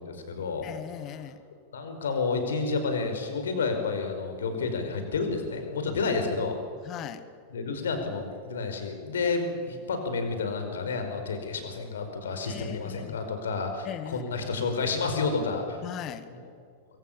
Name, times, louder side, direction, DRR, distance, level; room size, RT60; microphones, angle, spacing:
voice 1, 0.0-0.7 1.7-6.6 7.5-15.8 16.3-16.4, left 4 dB, 65° left, 6 dB, 4.9 m, -30 dB
voice 2, 0.6-1.4 6.0-6.1 6.8-7.2 9.2-9.3 12.4-13.2 13.8-14.3 15.8-16.3, left 10 dB, 35° left, 12 dB, 1.7 m, -39 dB
24.5 x 24.0 x 7.3 m, 2.1 s
figure-of-eight pair, 90°, 0 cm